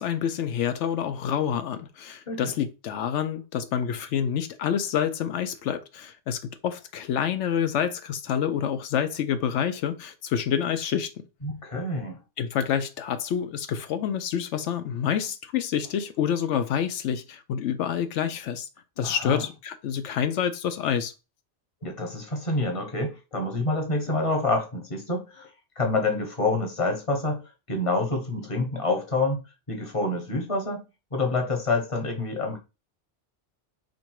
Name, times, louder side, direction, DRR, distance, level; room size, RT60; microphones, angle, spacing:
voice 1, 0.0-11.1 12.4-18.7 19.0-21.1, left 8 dB, 85° left, 0.9 m, -27 dB
voice 2, 11.4-12.2 19.0-19.4 21.8-25.5 25.8-30.8 31.1-32.6, left 2 dB, 30° left, 1.1 m, -27 dB
4.3 x 2.6 x 4.6 m
omnidirectional pair, 1.2 m